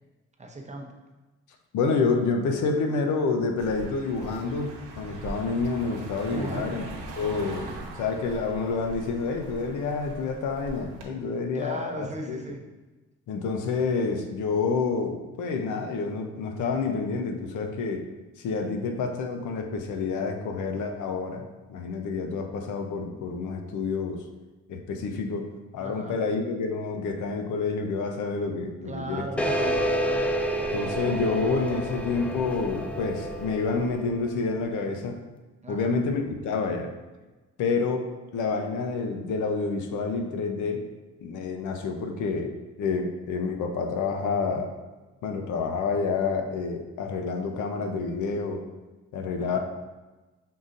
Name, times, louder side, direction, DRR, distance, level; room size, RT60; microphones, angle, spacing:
voice 1, 0.4-0.9 6.3-6.7 11.5-12.7 25.8-26.2 28.9-29.9 35.6-36.0 49.4-49.6, right 2 dB, 25° right, 1 dB, 0.7 m, -37 dB
voice 2, 1.7-6.8 7.2-12.4 13.3-18.1 18.4-21.4 21.7-24.2 24.7-29.3 30.7-35.2 35.7-37.0 37.6-38.1 38.3-40.8 41.2-44.8 45.2-48.7 49.1-49.6, left 4 dB, 75° left, 4 dB, 0.6 m, -28 dB
Car passing by, 3.6-11.1, right 2 dB, 90° right, 0.9 m, -41 dB
sound 1, 29.4-34.5, equal, 5° left, 0.3 m, -29 dB
5.4 x 3.8 x 2.5 m, 1.2 s
cardioid pair, 90°, 30 cm